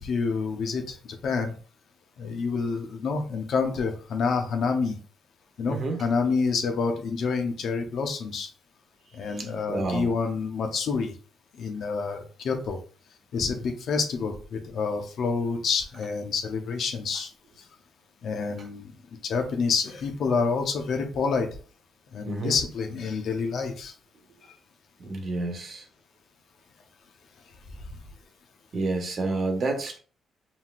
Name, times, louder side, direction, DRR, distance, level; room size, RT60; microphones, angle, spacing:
voice 1, 0.0-1.5 2.2-5.0 5.6-8.5 9.1-11.1 11.5-12.8 13.3-17.3 18.2-21.5 22.1-23.9, left 5 dB, 65° left, 5 dB, 0.9 m, -28 dB
voice 2, 5.7-6.0 9.3-10.1 22.2-22.6 25.0-25.9 28.7-30.0, right 3 dB, 50° right, 3 dB, 1.2 m, -29 dB
5.6 x 2.8 x 2.5 m, 0.41 s
cardioid pair, 90°, 0 cm